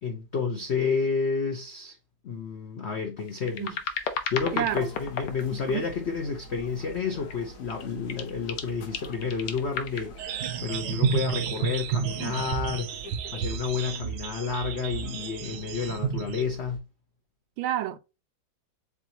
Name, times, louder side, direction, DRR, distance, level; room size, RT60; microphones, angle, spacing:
voice 1, 0.0-2.0 2.2-3.8 4.3-13.0 13.3-16.8, left 5 dB, 85° left, 0.5 m, -30 dB
sound 1, 3.2-6.1 6.6-7.4 7.7-12.2 12.9-13.1, left 6 dB, 65° left, 1.4 m, -36 dB
sound 2, 4.4-16.8, right 2 dB, 50° left, 1.3 m, -47 dB
voice 2, 4.5-4.9 5.5-5.9 12.2-12.5 17.6-18.0, right 12 dB, 90° right, 1.4 m, -31 dB
sound 3, 10.2-16.4, right 8 dB, 70° right, 1.2 m, -31 dB
4.8 x 3.9 x 2.8 m
omnidirectional pair, 2.1 m